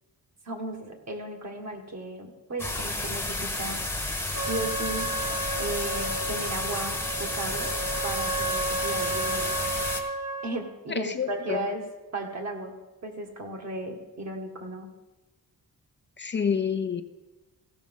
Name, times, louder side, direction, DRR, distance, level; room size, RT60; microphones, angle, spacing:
voice 1, 0.4-3.8 4.4-5.1 5.6-7.7 8.0-9.7 10.4-11.8 12.1-14.9, right 2 dB, 50° right, 2 dB, 1.9 m, -35 dB
sound 1, 2.6-10.0, left 2 dB, 5° left, 1.1 m, -31 dB
Trumpet, 4.3-10.6, right 2 dB, 70° right, 2.2 m, -33 dB
voice 2, 10.9-11.6 16.2-17.0, left 6 dB, 30° left, 7 dB, 0.6 m, -28 dB
15.5 x 6.1 x 5.5 m, 1.1 s
wide cardioid pair, 125°, 35 cm